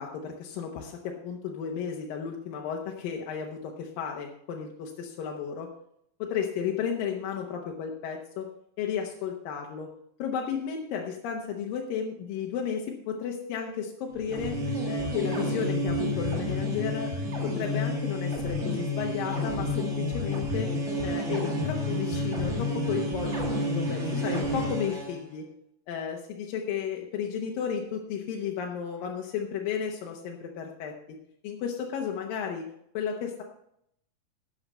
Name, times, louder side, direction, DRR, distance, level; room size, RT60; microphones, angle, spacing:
voice 1, 0.0-5.7 6.2-8.5 8.8-9.9 10.2-14.6 14.8-17.1 17.4-20.7 21.0-25.5 25.9-30.9 31.4-32.7 32.9-33.4, left 7 dB, 80° left, 0 dB, 2.7 m, -33 dB
sound 1, 14.1-25.2, left 1 dB, 25° right, 1.7 m, -30 dB
12.5 x 8.1 x 5.5 m, 0.73 s
omnidirectional pair, 4.0 m